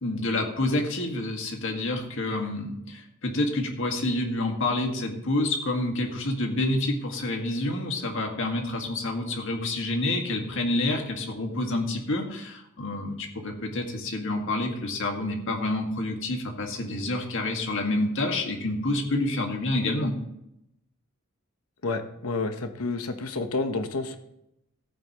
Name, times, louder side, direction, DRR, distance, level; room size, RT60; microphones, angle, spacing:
voice 1, 0.0-20.2, left 2 dB, 60° left, 2 dB, 1.9 m, -28 dB
voice 2, 21.8-24.2, left 3 dB, 85° left, 7 dB, 1.1 m, -29 dB
15.5 x 8.8 x 3.1 m, 0.81 s
head